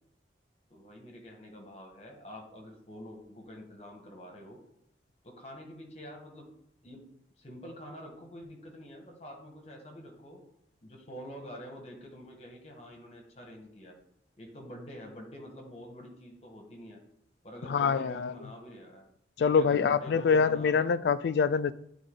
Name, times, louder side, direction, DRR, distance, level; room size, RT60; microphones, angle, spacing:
voice 1, 0.7-4.6 5.2-6.5 6.8-7.0 7.4-10.4 10.8-13.9 14.4-17.0 17.4-19.1 19.4-21.0, equal, 35° left, 1 dB, 1.3 m, -47 dB
voice 2, 17.6-18.5 19.4-21.7, left 5 dB, 70° left, 15 dB, 0.3 m, -25 dB
9.9 x 3.8 x 3.8 m, 0.76 s
head